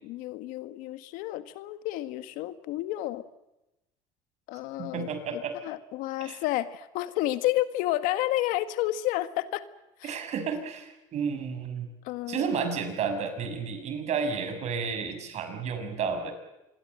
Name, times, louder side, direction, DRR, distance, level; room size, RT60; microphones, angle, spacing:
voice 1, 0.0-3.2 4.5-5.1 5.3-9.6 10.0-10.2 12.0-12.5, left 15 dB, 70° left, 12 dB, 1.7 m, -30 dB
voice 2, 4.8-5.6 6.2-6.4 10.0-11.9 12.3-16.3, right 6 dB, 50° right, 8 dB, 6.5 m, -31 dB
26.5 x 22.5 x 7.9 m, 0.94 s
supercardioid pair, 100°, 14 cm